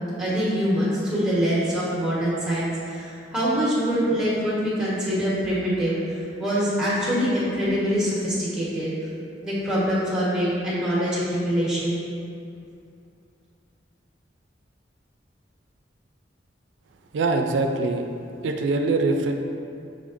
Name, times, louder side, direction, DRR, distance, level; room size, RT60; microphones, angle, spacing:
voice 1, 0.2-8.9 9.4-12.0, equal, 5° right, -9 dB, 1.2 m, -24 dB
voice 2, 17.1-18.0 18.4-19.3, right 3 dB, 85° right, 4 dB, 0.3 m, -23 dB
5.1 x 3.5 x 2.5 m, 2.5 s
head